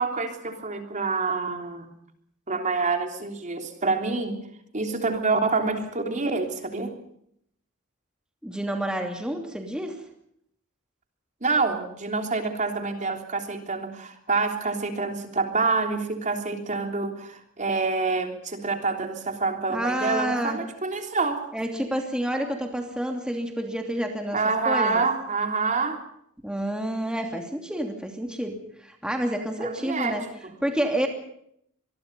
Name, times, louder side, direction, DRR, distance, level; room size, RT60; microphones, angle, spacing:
voice 1, 0.0-1.9 2.5-4.4 4.7-6.9 11.4-21.4 24.3-26.0 29.6-30.5, right 4 dB, 35° right, 5 dB, 3.4 m, -27 dB
voice 2, 8.4-10.0 19.7-20.6 21.5-24.4 24.7-25.0 26.4-28.6 28.8-30.2 30.6-31.1, right 1 dB, 5° right, 3 dB, 2.8 m, -29 dB
25.5 x 22.5 x 5.5 m, 0.70 s
head